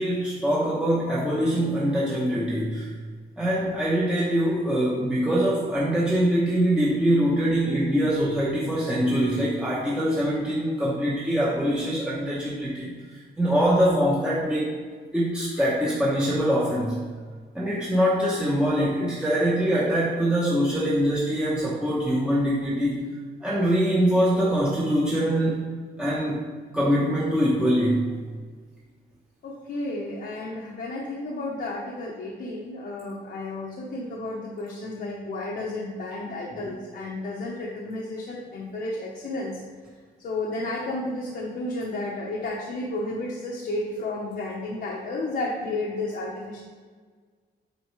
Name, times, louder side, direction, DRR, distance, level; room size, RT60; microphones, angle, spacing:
voice 1, 0.0-2.9 3.4-12.9 13.4-14.7 15.1-17.0 17.5-23.0 23.4-25.6 26.0-26.4 26.7-28.1, equal, 5° right, -7 dB, 0.8 m, -23 dB
voice 2, 29.4-39.6 40.2-46.6, left 2 dB, 60° left, -3 dB, 0.9 m, -32 dB
8.1 x 4.5 x 3.1 m, 1.6 s
wide cardioid pair, 170°, 18 cm